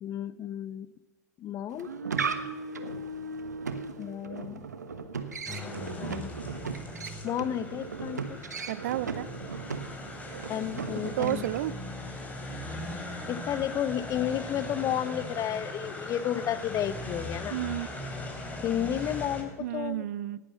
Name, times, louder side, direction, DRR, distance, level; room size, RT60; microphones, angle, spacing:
voice 1, 0.0-0.9 1.4-1.9 4.0-4.7 6.0-6.3 7.2-8.4 10.5-11.5 13.3-17.6 18.6-20.0, left 11 dB, 40° left, 17 dB, 0.9 m, -32 dB
sound 1, 1.7-11.7, right 4 dB, 90° right, 1.3 m, -37 dB
sound 2, 5.5-19.4, left 1 dB, 15° left, 4.0 m, -39 dB
voice 2, 8.7-9.3 11.2-11.7 17.5-17.9 19.6-20.4, right 14 dB, 65° right, 18 dB, 0.8 m, -31 dB
18.5 x 10.0 x 7.0 m, 1.3 s
hypercardioid pair, 90°, 9 cm